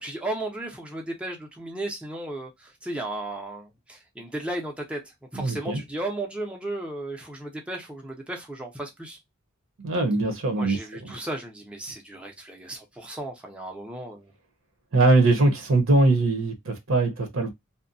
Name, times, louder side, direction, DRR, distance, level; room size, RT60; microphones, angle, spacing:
voice 1, 0.0-9.2 10.6-14.3, right 1 dB, 5° right, 0.5 m, -35 dB
voice 2, 5.3-5.8 9.8-11.1 14.9-17.5, right 2 dB, 75° right, 0.8 m, -22 dB
2.6 x 2.1 x 2.5 m
head